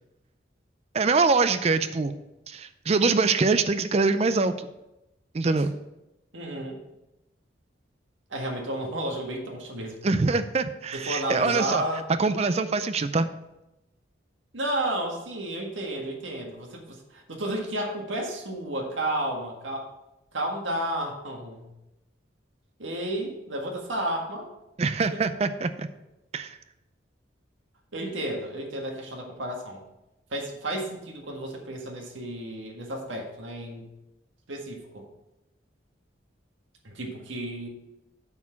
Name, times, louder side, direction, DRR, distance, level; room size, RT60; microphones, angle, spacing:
voice 1, 0.9-2.2 2.5-4.7 5.3-5.7 10.0-11.8 12.2-13.3 24.8-25.9 26.3-26.6, right 4 dB, 35° right, 12 dB, 0.4 m, -24 dB
voice 2, 6.3-6.8 8.3-10.0 10.9-12.0 14.5-19.9 20.3-21.7 22.8-24.5 25.1-25.2 27.9-29.8 30.3-33.9 34.5-35.0 36.8-37.7, right 1 dB, 85° right, 1 dB, 1.7 m, -32 dB
8.3 x 4.5 x 5.8 m, 0.93 s
head